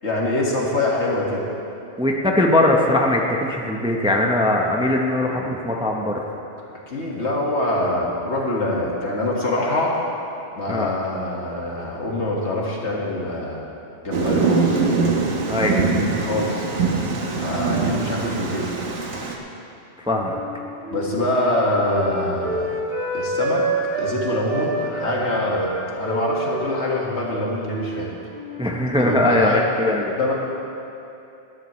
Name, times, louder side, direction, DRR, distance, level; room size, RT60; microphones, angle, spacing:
voice 1, 0.0-1.4 6.9-9.9 10.5-13.6 14.0-14.8 16.2-16.7 17.4-18.7 20.9-22.7 23.1-23.6 24.0-28.1 29.0-29.6 30.2-30.3, left 1 dB, 70° left, -3 dB, 2.2 m, -24 dB
voice 2, 2.0-6.1 10.7-10.9 15.5-15.8 20.0-20.4 28.6-30.1, left 1 dB, 5° right, 0 dB, 0.8 m, -20 dB
Thunder, 14.1-19.3, right 4 dB, 80° right, 1.4 m, -22 dB
Wind instrument woodwind instrument, 20.3-24.2 24.5-28.0 28.3-28.9, right 2 dB, 60° right, 1.9 m, -28 dB
18.0 x 12.5 x 3.2 m, 2.7 s
omnidirectional pair, 1.2 m